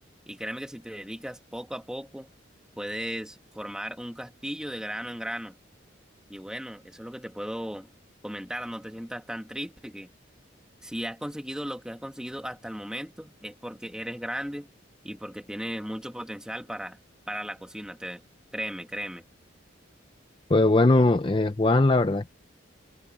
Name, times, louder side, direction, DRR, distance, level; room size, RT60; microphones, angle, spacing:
voice 1, 0.3-2.3 2.8-5.6 6.3-7.9 8.2-10.1 10.8-14.7 15.0-17.0 17.3-18.2 18.5-19.2, equal, 5° right, 1.8 m, -36 dB
voice 2, 20.5-22.3, left 2 dB, 25° left, 0.5 m, -20 dB
head